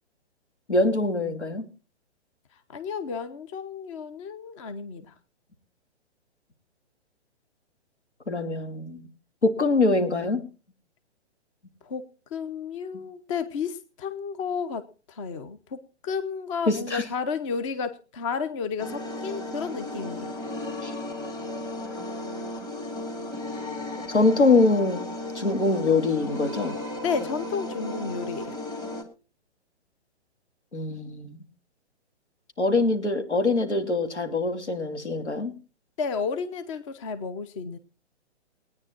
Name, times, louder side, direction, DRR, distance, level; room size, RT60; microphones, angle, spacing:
voice 1, 0.7-1.7 8.3-9.1 9.4-10.4 12.9-13.0 16.7-17.0 20.8-20.9 24.1-25.1 25.3-26.7 30.7-31.4 32.6-35.5, left 3 dB, 80° left, 5 dB, 2.9 m, -23 dB
voice 2, 2.7-5.1 11.8-20.4 27.0-28.6 36.0-37.8, left 5 dB, 30° left, 11 dB, 0.9 m, -32 dB
sound 1, 18.8-29.0, left 1 dB, 10° left, 2.3 m, -35 dB
19.5 x 9.7 x 4.4 m, 0.35 s
figure-of-eight pair, 125°, 34 cm